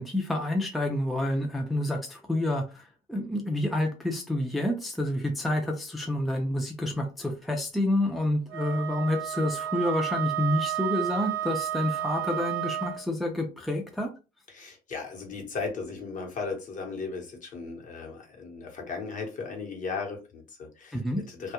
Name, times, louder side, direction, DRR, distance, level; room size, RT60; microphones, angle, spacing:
voice 1, 0.0-14.1 20.9-21.2, left 1 dB, ahead, 2 dB, 0.4 m, -28 dB
Wind instrument woodwind instrument, 8.5-13.0, right 11 dB, 90° right, 0.4 m, -32 dB
voice 2, 14.5-21.0 21.3-21.5, left 4 dB, 50° left, 2 dB, 0.9 m, -36 dB
2.2 x 2.0 x 2.8 m, 0.31 s
cardioid pair, 110°, 17 cm